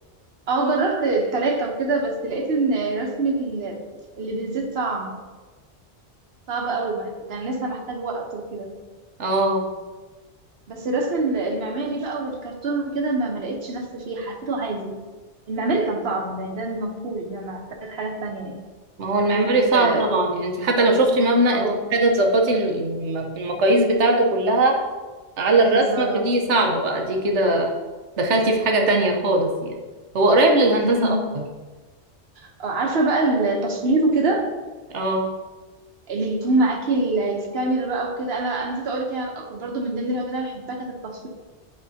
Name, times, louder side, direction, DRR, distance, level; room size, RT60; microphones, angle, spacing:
voice 1, 0.5-3.8 4.2-5.1 6.5-8.7 10.7-15.0 15.5-18.5 19.3-20.1 21.5-21.8 25.6-26.2 30.8-31.2 32.4-34.5 36.1-41.3, right 2 dB, 65° right, 1 dB, 1.2 m, -25 dB
voice 2, 9.2-9.6 19.0-21.6 21.9-24.7 25.4-27.8 28.2-29.7 30.1-31.2 34.9-35.2, right 2 dB, 85° right, 2 dB, 1.3 m, -20 dB
9.9 x 4.9 x 2.8 m, 1.3 s
omnidirectional pair, 1.2 m